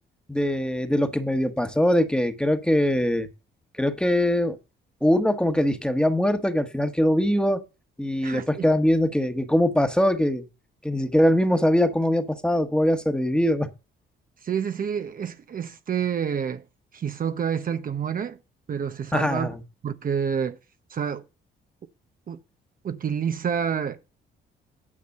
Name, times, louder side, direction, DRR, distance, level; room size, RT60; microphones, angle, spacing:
voice 1, 0.3-3.3 3.8-4.6 5.0-7.6 8.0-10.4 10.8-13.7 19.1-19.6, equal, 5° left, 1.4 m, -22 dB
voice 2, 8.2-8.7 14.4-16.6 16.9-18.4 18.7-19.5 19.8-20.6 20.9-21.2 22.3-22.4 22.8-24.1, right 7 dB, 45° right, 0.9 m, -28 dB
9.9 x 5.3 x 6.5 m
cardioid pair, 90°, 20 cm